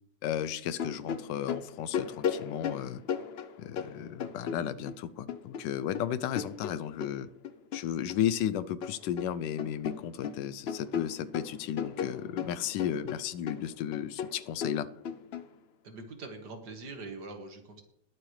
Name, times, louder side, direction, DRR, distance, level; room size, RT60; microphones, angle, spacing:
voice 1, 0.2-3.0 3.6-7.3 7.7-14.9, left 10 dB, 85° left, 15 dB, 1.3 m, -34 dB
sound 1, 0.7-5.0 5.3-8.2 8.5-9.3 9.6-15.4, left 7 dB, 70° left, 0.6 m, -36 dB
voice 2, 15.8-17.8, right 3 dB, 70° right, 5 dB, 2.2 m, -43 dB
20.5 x 7.7 x 3.2 m, 0.72 s
omnidirectional pair, 1.9 m